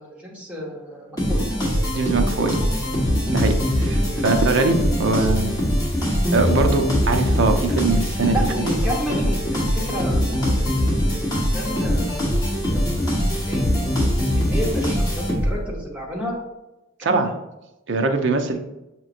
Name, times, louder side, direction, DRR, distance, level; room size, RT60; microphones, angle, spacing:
voice 1, 0.0-1.4 5.1-5.4 8.3-10.2 10.6-10.7 11.3-12.4 12.7-13.6 14.0-14.1 14.3-16.4 17.0-17.2, equal, 5° right, -4 dB, 0.9 m, -31 dB
sound 1, 1.2-15.7, equal, 20° left, 1.2 m, -22 dB
voice 2, 1.9-2.6 3.3-5.5 6.3-8.4 17.0-17.3 17.9-18.6, right 3 dB, 60° right, 6 dB, 0.5 m, -22 dB
6.4 x 3.0 x 2.5 m, 0.97 s
head